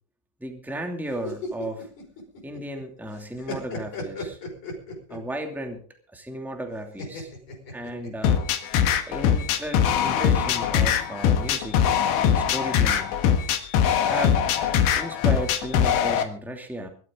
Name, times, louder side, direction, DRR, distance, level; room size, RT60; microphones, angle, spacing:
voice 1, 0.4-1.9 2.4-4.4 5.1-5.8 6.1-7.3 7.7-8.4 9.1-12.0 12.3-13.1 14.0-14.4 14.9-16.9, right 1 dB, ahead, 3 dB, 0.6 m, -34 dB
sound 1, 1.1-2.8 3.1-5.3 7.0-8.4, left 2 dB, 35° left, 6.2 m, -35 dB
sound 2, 8.2-16.2, left 8 dB, 75° left, 3.6 m, -22 dB
23.0 x 13.0 x 3.9 m, 0.42 s
omnidirectional pair, 5.4 m